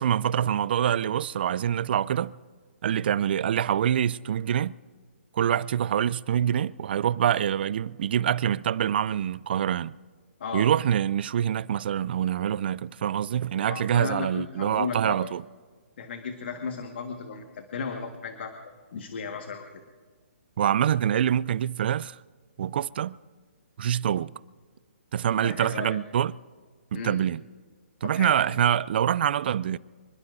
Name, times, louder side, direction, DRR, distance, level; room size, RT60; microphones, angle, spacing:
voice 1, 0.0-2.3 2.8-4.8 5.3-9.9 10.5-15.4 20.6-22.2 22.6-23.2 23.8-24.3 25.1-26.3 26.9-27.4 28.0-29.8, right 9 dB, 50° right, 0.4 m, -25 dB
voice 2, 13.7-15.2 16.0-18.5 18.9-19.6 25.3-26.0 26.9-27.2 28.0-28.3, left 5 dB, 55° left, 1.6 m, -35 dB
26.5 x 20.5 x 2.6 m
hypercardioid pair, 145°, 7 cm